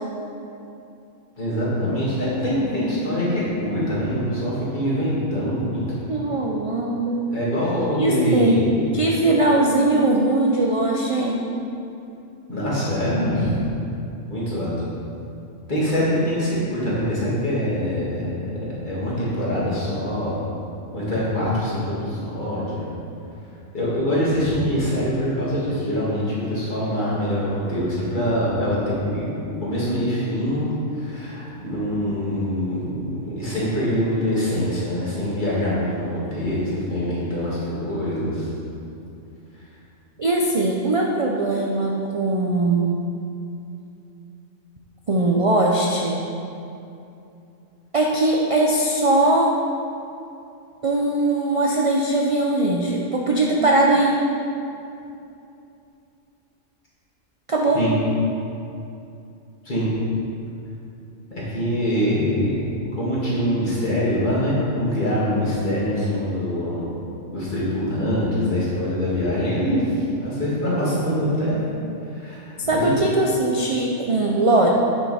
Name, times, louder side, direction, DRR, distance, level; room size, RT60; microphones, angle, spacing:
voice 1, 1.4-5.8 7.3-8.9 12.5-13.5 14.3-14.7 15.7-18.4 18.8-20.4 20.9-22.9 23.7-38.5 57.7-58.0 59.6-59.9 61.5-67.0 67.3-71.6 72.1-72.9 74.1-74.2, equal, 35° left, -8 dB, 2.2 m, -24 dB
voice 2, 6.1-7.2 8.0-11.4 40.2-43.0 45.1-46.2 47.9-49.5 50.8-54.2 57.5-57.8 72.7-74.7, right 2 dB, 50° right, -1 dB, 0.4 m, -20 dB
8.8 x 5.7 x 4.2 m, 2.7 s
omnidirectional pair, 1.4 m